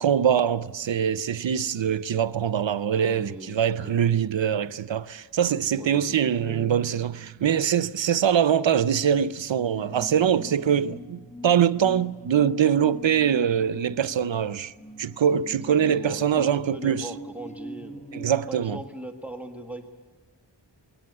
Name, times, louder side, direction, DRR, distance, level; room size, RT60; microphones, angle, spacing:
voice 1, 0.0-14.7 15.0-17.1 18.1-18.8, right 8 dB, 85° right, 0.7 m, -23 dB
voice 2, 2.9-4.0 5.8-6.1 6.4-6.8 15.5-18.0 18.5-19.9, equal, 5° right, 1.6 m, -40 dB
sound 1, 9.7-18.6, equal, 15° left, 1.3 m, -43 dB
22.0 x 17.5 x 9.6 m
wide cardioid pair, 50°, 44 cm